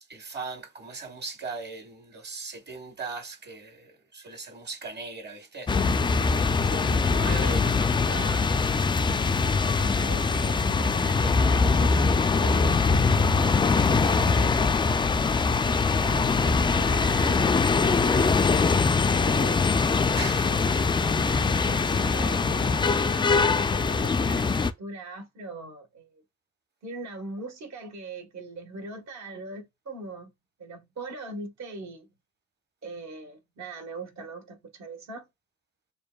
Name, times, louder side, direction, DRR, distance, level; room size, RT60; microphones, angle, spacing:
voice 1, 0.1-8.8 18.1-18.3 20.1-20.8, right 3 dB, 35° right, 1.1 m, -39 dB
sound 1, 5.7-24.7, left 4 dB, 15° left, 0.3 m, -23 dB
voice 2, 6.7-7.0 9.8-12.8 13.8-14.7 16.1-19.6 21.0-26.2 26.8-30.3 30.6-32.1 32.8-35.3, right 2 dB, 65° right, 1.5 m, -41 dB
6.6 x 2.5 x 2.3 m
cardioid pair, 90°, 30 cm